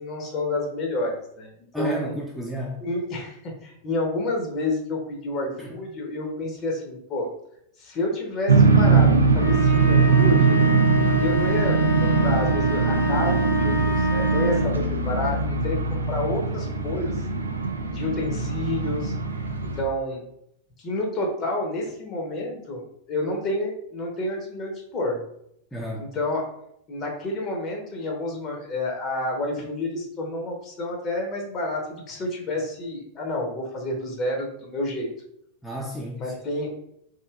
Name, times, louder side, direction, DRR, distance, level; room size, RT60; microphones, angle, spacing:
voice 1, 0.0-2.1 2.8-7.3 7.8-10.6 11.2-17.2 17.9-19.1 19.8-20.2 20.8-22.8 23.1-25.2 26.0-26.5 26.9-35.1 36.2-36.7, left 2 dB, 30° left, 1 dB, 0.7 m, -29 dB
voice 2, 1.7-2.8 5.6-5.7 25.7-26.1 35.6-36.4, right 1 dB, 5° left, -3 dB, 0.4 m, -31 dB
sound 1, 8.5-19.8, right 4 dB, 75° right, 0.3 m, -21 dB
sound 2, 9.3-14.8, right 2 dB, 75° left, 0.6 m, -27 dB
3.1 x 2.6 x 2.3 m, 0.74 s
figure-of-eight pair, 90°, 0 cm